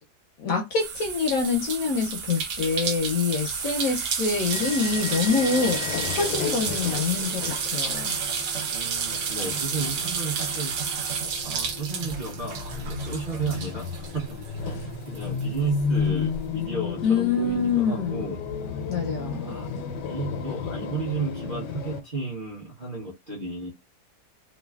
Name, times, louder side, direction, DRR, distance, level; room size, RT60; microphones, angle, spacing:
voice 1, 0.4-8.2 17.0-18.3 18.9-19.6, left 4 dB, 70° left, 0.9 m, -26 dB
sound 1, 0.8-14.8 15.2-16.4, right 6 dB, 85° right, 1.3 m, -31 dB
sound 2, 4.5-22.0, left 5 dB, 85° left, 1.2 m, -33 dB
voice 2, 8.7-11.1 11.4-14.2 14.8-18.4 19.4-23.7, right 4 dB, 40° right, 0.7 m, -33 dB
3.2 x 2.3 x 2.3 m
omnidirectional pair, 1.8 m